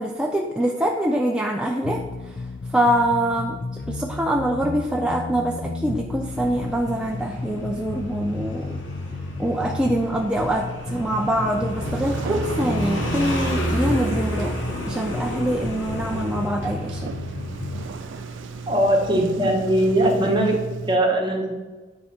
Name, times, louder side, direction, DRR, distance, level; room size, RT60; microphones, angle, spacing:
voice 1, 0.0-2.4 2.7-3.6 3.9-8.8 9.4-14.6 14.9-17.1, right 1 dB, 5° right, 0 dB, 0.5 m, -24 dB
sound 1, 1.8-17.8, left 3 dB, 60° left, 0.6 m, -33 dB
Motorcycle, 6.2-20.5, equal, 85° left, 1.9 m, -32 dB
Sliding door, 11.8-21.0, right 5 dB, 75° right, 0.4 m, -35 dB
voice 2, 18.7-20.6 20.9-21.5, right 1 dB, 25° right, 0 dB, 1.4 m, -20 dB
9.6 x 4.9 x 4.4 m, 1.3 s
head